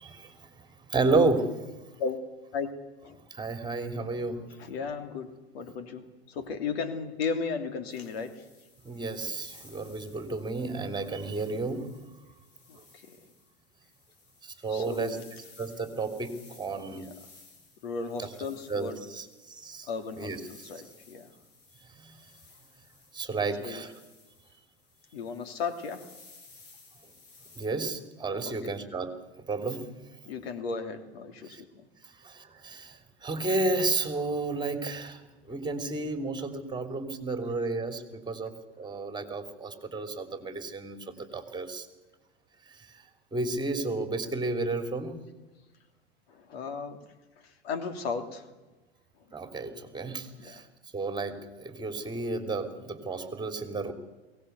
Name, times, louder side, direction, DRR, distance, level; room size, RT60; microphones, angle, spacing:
voice 1, 0.0-1.8 3.3-4.5 8.8-11.9 12.8-12.9 14.4-15.2 15.6-17.1 18.2-18.3 18.7-19.9 20.2-20.7 21.9-22.3 23.1-23.9 27.6-29.9 31.4-31.6 32.0-41.9 42.7-45.2 49.3-50.7 50.9-53.9, right 3 dB, 15° right, 7 dB, 3.3 m, -32 dB
voice 2, 4.6-8.4 12.7-12.8 13.1-13.2 14.7-15.2 16.9-17.1 17.8-19.0 19.9-20.3 20.6-21.3 23.6-23.8 25.1-26.1 30.3-31.8 46.3-47.0 47.4-48.5 50.4-50.5, left 5 dB, 70° left, 8 dB, 2.9 m, -35 dB
sound 1, 7.9-27.7, left 4 dB, 50° left, 6.4 m, -57 dB
22.5 x 18.5 x 8.2 m, 1.1 s
hypercardioid pair, 100°, 31 cm